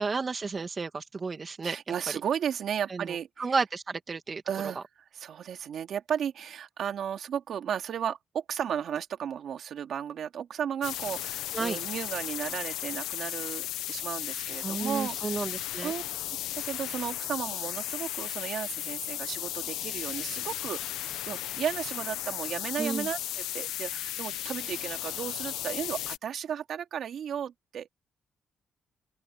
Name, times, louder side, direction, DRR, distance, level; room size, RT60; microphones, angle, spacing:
voice 1, 0.0-1.8 2.9-4.4 4.8-4.9 11.5-11.8 14.6-15.9 22.8-23.1, right 4 dB, 35° right, 2.1 m, -32 dB
voice 2, 1.6-3.5 4.5-4.8 5.1-15.5 15.8-16.0 16.6-27.9, right 8 dB, 65° right, 2.6 m, -34 dB
sound 1, 10.8-26.2, left 13 dB, 90° left, 1.0 m, -35 dB
open air
cardioid pair, 90°, 0 cm